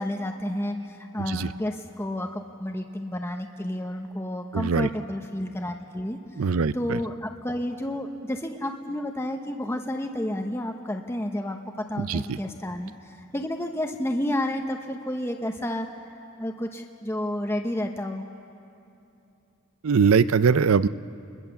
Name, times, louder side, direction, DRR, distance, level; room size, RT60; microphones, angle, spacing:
voice 1, 0.0-6.4 6.7-11.6 11.9-15.9 16.4-18.2, left 1 dB, 10° left, 3 dB, 0.9 m, -31 dB
voice 2, 4.5-4.9 6.4-7.0 12.0-12.2 19.8-20.9, right 5 dB, 75° right, 16 dB, 0.5 m, -21 dB
28.0 x 21.5 x 7.0 m, 2.7 s
head